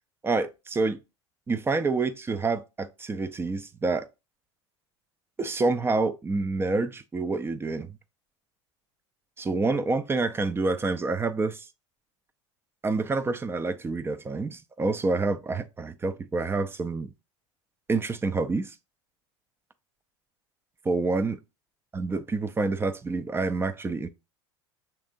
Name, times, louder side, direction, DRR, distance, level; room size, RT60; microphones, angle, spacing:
voice 1, 0.2-1.0 1.5-4.1 5.4-7.9 9.4-11.7 12.8-17.1 17.9-18.7 20.8-21.4 21.9-24.1, right 3 dB, 15° right, 0.4 m, -27 dB
5.7 x 3.5 x 2.5 m
hypercardioid pair, 80°, 15 cm